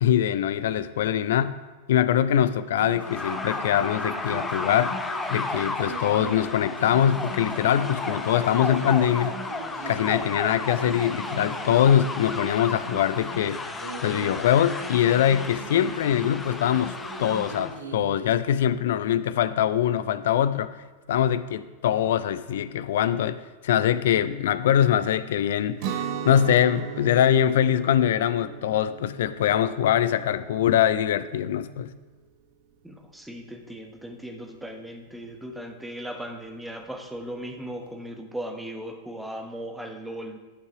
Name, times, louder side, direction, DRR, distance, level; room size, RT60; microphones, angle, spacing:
voice 1, 0.0-1.5 1.9-4.9 5.3-9.4 9.9-13.6 14.0-20.7 21.1-23.4 23.6-31.9, left 10 dB, 60° left, 15 dB, 0.4 m, -23 dB
sound 1, 2.8-6.5 6.8-10.4 10.8-14.5 14.8-18.4, right 1 dB, 75° right, 1.3 m, -40 dB
sound 2, 2.9-17.8, left 3 dB, 15° left, 0.7 m, -33 dB
Guitar, 25.8-31.6, right 8 dB, 45° right, 0.6 m, -37 dB
voice 2, 32.8-40.4, right 1 dB, 5° right, 3 dB, 1.0 m, -37 dB
11.0 x 5.4 x 4.8 m, 1.3 s
figure-of-eight pair, 90°, 0 cm